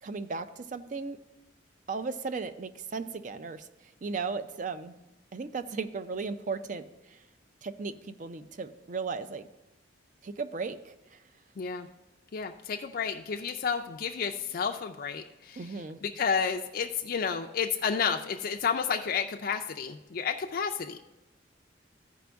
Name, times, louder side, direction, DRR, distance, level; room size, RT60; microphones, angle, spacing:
voice 1, 0.0-1.2 1.9-5.0 5.3-7.2 7.6-9.5 10.2-11.2 15.6-16.0, right 4 dB, 40° right, 12 dB, 0.4 m, -36 dB
voice 2, 11.6-11.9 12.3-15.6 16.0-21.0, left 6 dB, 50° left, 3 dB, 0.4 m, -31 dB
14.0 x 5.1 x 3.4 m, 1.0 s
head